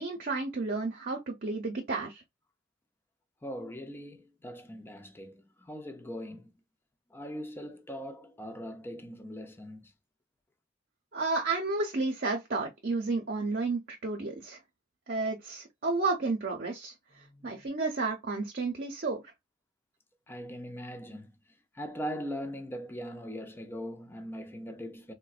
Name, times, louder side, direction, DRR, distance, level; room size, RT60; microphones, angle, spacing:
voice 1, 0.0-2.2 11.1-14.6 15.1-16.9 17.4-19.2, right 3 dB, 55° right, 0.7 m, -31 dB
voice 2, 3.4-6.5 7.1-9.9 17.1-17.7 20.3-25.1, equal, 10° left, 0.5 m, -41 dB
3.8 x 2.1 x 2.4 m
head